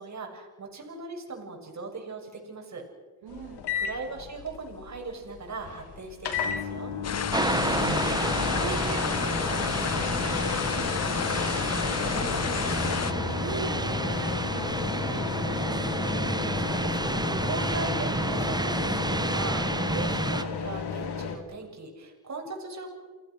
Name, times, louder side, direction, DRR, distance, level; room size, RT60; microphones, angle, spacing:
voice 1, 0.0-2.8 3.7-6.9 16.5-22.9, right 3 dB, 45° right, 1 dB, 6.9 m, -39 dB
voice 2, 3.2-3.6 7.5-15.8, right 5 dB, 75° right, -4 dB, 4.4 m, -41 dB
sound 1, 3.3-21.4, left 6 dB, 80° left, 3.0 m, -33 dB
sound 2, 7.0-13.1, left 7 dB, 40° left, 1.0 m, -31 dB
sound 3, 7.3-20.4, right 2 dB, 10° right, 1.2 m, -30 dB
29.5 x 19.0 x 6.4 m, 1.4 s
cardioid pair, 95°, 40 cm